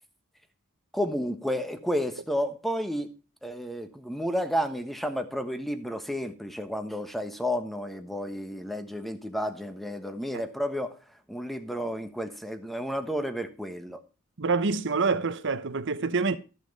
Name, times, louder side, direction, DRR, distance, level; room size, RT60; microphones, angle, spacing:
voice 1, 0.9-3.1 3.4-11.0 11.3-14.0, equal, ahead, 1.2 m, -31 dB
voice 2, 14.4-16.4, right 4 dB, 60° right, 0.9 m, -26 dB
14.0 x 6.3 x 5.3 m
head